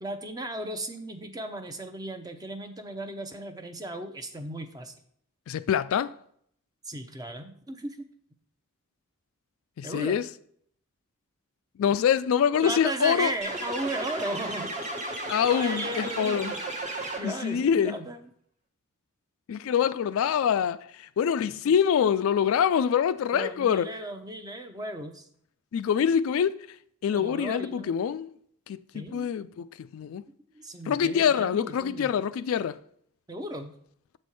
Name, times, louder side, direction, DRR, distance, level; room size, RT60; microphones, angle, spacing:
voice 1, 0.0-4.9 6.8-8.0 9.8-10.2 12.6-14.7 15.5-16.6 17.2-18.3 23.3-25.3 27.1-28.1 28.9-29.3 30.5-32.1 33.3-33.7, right 1 dB, 15° right, 0.6 m, -36 dB
voice 2, 5.5-6.2 9.8-10.3 11.8-13.3 15.3-16.5 17.2-17.9 19.5-23.9 25.7-26.7 27.0-28.3 28.7-30.2 30.9-32.8, left 8 dB, 65° left, 0.3 m, -25 dB
sound 1, 13.4-17.6, right 2 dB, 35° right, 1.1 m, -34 dB
7.3 x 4.3 x 4.7 m
head